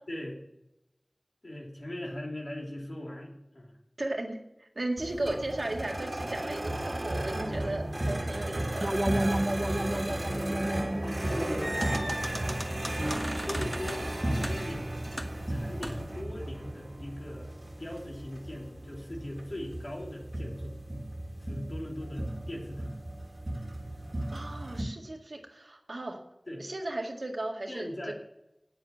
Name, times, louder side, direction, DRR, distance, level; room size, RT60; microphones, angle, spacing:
voice 1, 0.1-0.4 1.4-3.8 9.2-9.4 11.0-13.0 13.4-15.0 15.5-20.8 21.4-22.9 26.5-26.7 27.7-28.1, left 1 dB, 65° left, -1 dB, 3.4 m, -40 dB
voice 2, 4.0-9.0 24.3-26.2 26.6-28.1, right 2 dB, 85° right, 1 dB, 1.9 m, -36 dB
sound 1, 5.0-24.8, right 1 dB, 50° right, 2.0 m, -35 dB
sound 2, 8.8-13.7, right 1 dB, 25° right, 0.4 m, -33 dB
sound 3, 11.2-16.2, equal, 10° right, 1.4 m, -38 dB
8.9 x 7.8 x 8.5 m, 0.87 s
wide cardioid pair, 40°, 0 cm